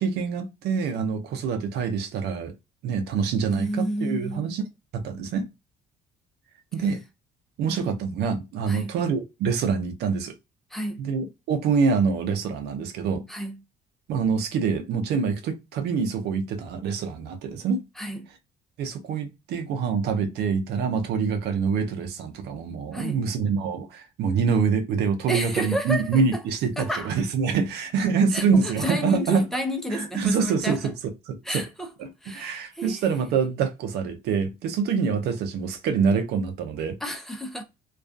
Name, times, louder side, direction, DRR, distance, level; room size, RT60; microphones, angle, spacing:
voice 1, 0.0-2.5 2.8-4.6 4.9-5.5 6.7-7.0 7.6-10.3 11.0-13.2 14.1-17.8 18.8-29.5 29.9-30.9 31.3-31.6 32.0-37.0, right 5 dB, 75° right, 0.6 m, -25 dB
voice 2, 3.5-4.5 8.7-8.9 10.7-11.0 13.3-13.6 18.0-18.2 22.9-23.3 25.3-26.4 26.8-27.1 28.3-30.8 31.4-31.9 32.2-33.0 37.0-37.6, equal, ahead, 0.5 m, -31 dB
2.4 x 2.3 x 2.3 m
cardioid pair, 110°, 17 cm